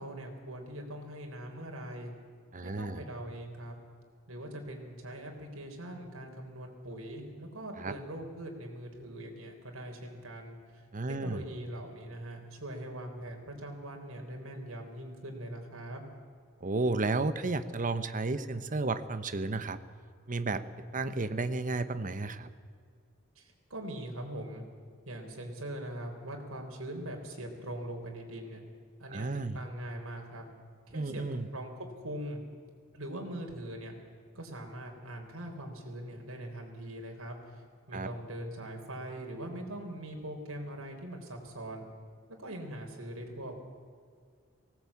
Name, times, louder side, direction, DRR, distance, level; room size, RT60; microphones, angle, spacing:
voice 1, 0.0-2.1 2.6-3.7 4.3-10.6 11.1-16.1 23.4-24.6 25.1-28.6 29.0-30.5 30.9-31.2 31.5-32.4 32.9-33.9 34.3-37.6 37.9-41.9 42.4-43.6, right 1 dB, 80° right, 2 dB, 3.8 m, -42 dB
voice 2, 2.5-3.0 7.8-7.9 10.9-11.4 16.6-19.8 20.3-22.5 29.1-29.6 30.9-31.5 37.9-38.1, right 3 dB, 40° right, 11 dB, 1.0 m, -32 dB
19.0 x 17.5 x 8.5 m, 2.1 s
head